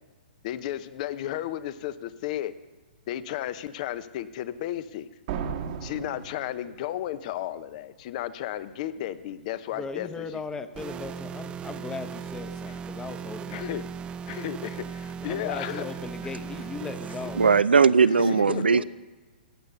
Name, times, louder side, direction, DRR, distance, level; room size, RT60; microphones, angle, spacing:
voice 1, 0.4-2.5 3.1-5.1 5.8-10.3 13.5-13.8 14.3-15.9 18.2-18.8, left 12 dB, 45° left, 15 dB, 0.8 m, -33 dB
sound 1, 5.3-7.1, right 7 dB, 45° right, 1.2 m, -35 dB
voice 2, 9.7-13.9 15.2-17.6 18.2-18.8, left 4 dB, 10° left, 10 dB, 0.9 m, -38 dB
sound 2, 10.8-17.6, right 6 dB, 20° right, 0.4 m, -37 dB
voice 3, 17.4-18.8, right 5 dB, 85° right, 17 dB, 0.5 m, -19 dB
15.0 x 9.7 x 6.8 m, 1.3 s
hypercardioid pair, 125°, 5 cm